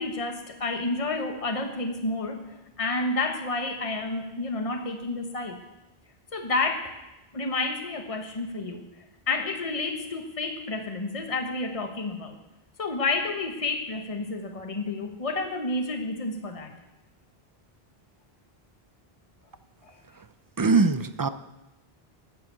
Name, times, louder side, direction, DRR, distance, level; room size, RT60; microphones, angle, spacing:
voice 1, 0.0-5.6 6.3-6.9 7.3-8.9 9.3-12.4 12.8-16.7 19.8-20.0, left 3 dB, 35° left, 4 dB, 1.3 m, -30 dB
voice 2, 20.6-21.3, right 4 dB, 35° right, 12 dB, 0.3 m, -21 dB
13.0 x 7.7 x 8.3 m, 1.0 s
omnidirectional pair, 1.1 m